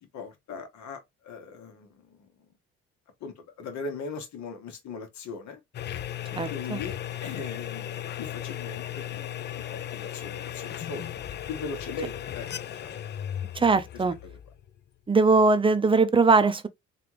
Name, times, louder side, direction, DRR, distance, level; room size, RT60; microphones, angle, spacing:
voice 1, 0.1-2.3 3.2-5.6 6.5-6.9 7.2-11.2 11.5-13.0 13.9-14.4, left 4 dB, 65° left, 1.2 m, -39 dB
sound 1, 5.7-14.9, left 11 dB, 35° left, 0.4 m, -36 dB
voice 2, 6.4-6.8 13.6-14.1 15.1-16.7, right 4 dB, 15° right, 0.6 m, -21 dB
3.4 x 2.4 x 3.0 m
supercardioid pair, 65°, 31 cm